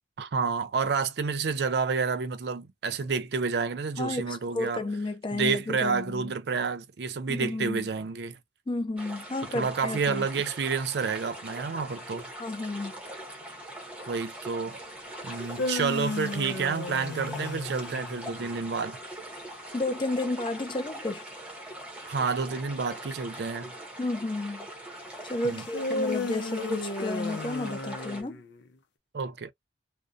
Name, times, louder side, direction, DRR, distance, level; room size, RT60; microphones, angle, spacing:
voice 1, 0.2-4.8 5.3-8.4 9.5-12.3 14.1-14.8 15.2-19.0 22.1-23.7 25.4-25.6 29.1-29.5, right 5 dB, 65° right, 0.4 m, -29 dB
voice 2, 4.0-6.3 7.3-7.9 8.7-10.3 12.4-12.9 19.7-21.2 24.0-24.7 25.2-28.4, left 2 dB, 30° left, 0.4 m, -32 dB
sound 1, 9.0-28.2, right 1 dB, 5° right, 0.7 m, -42 dB
sound 2, 15.3-18.6 25.7-28.7, left 2 dB, 80° left, 0.5 m, -34 dB
2.6 x 2.1 x 2.3 m
head